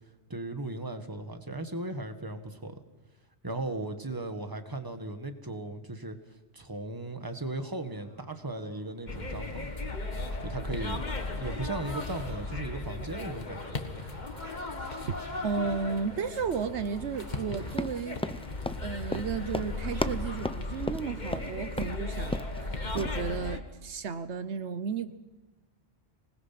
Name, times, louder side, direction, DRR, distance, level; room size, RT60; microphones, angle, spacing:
voice 1, 0.3-2.8 3.4-6.2 6.5-9.7 10.4-11.0 11.3-13.8, right 2 dB, 20° right, 7 dB, 1.7 m, -37 dB
sound 1, 7.8-23.5, equal, 40° right, 4.8 m, -55 dB
sound 2, 9.1-23.6, left 2 dB, 40° left, 1.7 m, -36 dB
voice 2, 14.8-18.2 18.8-25.1, right 6 dB, 80° right, 11 dB, 1.2 m, -34 dB
Run, 17.7-21.5 21.8-22.0 22.2-22.6 23.0-23.1, left 1 dB, 10° left, 0.3 m, -34 dB
25.5 x 20.0 x 5.9 m, 1.2 s
omnidirectional pair, 1.2 m